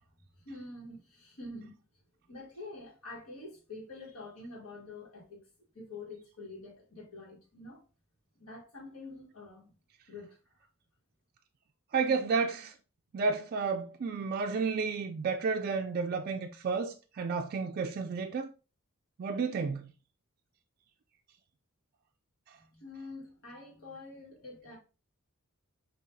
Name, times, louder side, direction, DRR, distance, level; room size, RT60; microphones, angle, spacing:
voice 1, 0.4-1.8 2.3-5.4 5.7-7.8 8.4-9.7 10.1-10.4 22.7-24.8, left 2 dB, 80° left, 1.7 m, -46 dB
voice 2, 11.9-12.7 13.1-18.5 19.2-19.9 22.5-22.6, right 4 dB, 45° right, 0.3 m, -31 dB
5.5 x 2.8 x 2.7 m
head